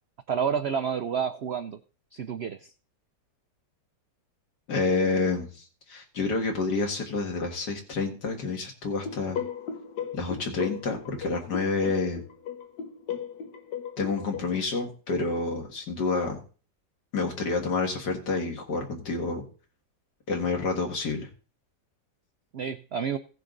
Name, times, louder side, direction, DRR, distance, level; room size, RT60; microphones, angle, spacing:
voice 1, 0.3-1.8 2.1-2.7 22.5-23.2, right 7 dB, 85° right, 10 dB, 0.5 m, -29 dB
voice 2, 4.7-5.5 5.9-9.4 10.1-12.2 14.0-16.4 17.1-19.4 20.3-21.3, left 3 dB, 70° left, 2 dB, 2.5 m, -28 dB
sound 1, 9.0-14.4, left 7 dB, 90° left, 1.8 m, -36 dB
16.0 x 6.6 x 3.9 m, 0.38 s
omnidirectional pair, 1.8 m